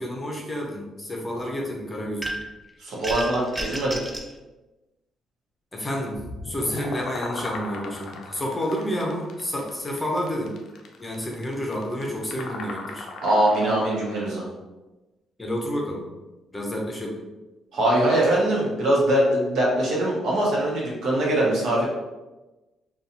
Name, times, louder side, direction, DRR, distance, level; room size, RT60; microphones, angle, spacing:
voice 1, 0.0-2.3 5.7-10.5 11.0-13.1 15.4-16.1 16.5-17.2, equal, 20° left, -1 dB, 0.6 m, -30 dB
sound 1, 2.2-2.6 3.0-4.3, right 1 dB, 15° right, 0.3 m, -32 dB
voice 2, 2.8-4.0 13.2-14.5 17.7-21.8, right 1 dB, 75° right, -4 dB, 0.9 m, -22 dB
sound 2, 6.2-14.3, left 3 dB, 70° left, 0.4 m, -38 dB
2.7 x 2.3 x 2.6 m, 1.1 s
cardioid pair, 90°, 0 cm